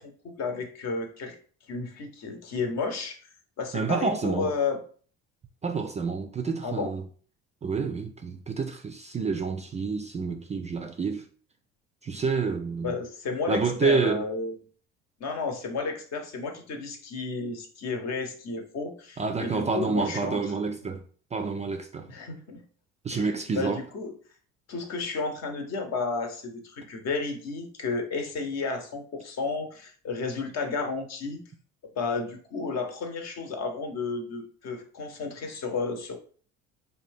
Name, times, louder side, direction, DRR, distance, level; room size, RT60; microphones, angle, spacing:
voice 1, 0.0-1.4 1.7-3.2 3.6-4.8 6.6-6.9 12.8-14.5 15.2-20.4 22.1-22.6 23.1-24.1 24.7-31.4 32.0-36.2, left 4 dB, 55° left, 0.8 m, -32 dB
voice 2, 3.7-4.5 5.6-7.0 7.6-11.3 12.0-12.9 13.5-14.2 19.2-21.0 21.3-22.1 23.0-23.8, right 4 dB, 20° right, 0.3 m, -28 dB
2.7 x 2.2 x 3.3 m
hypercardioid pair, 70°, 33 cm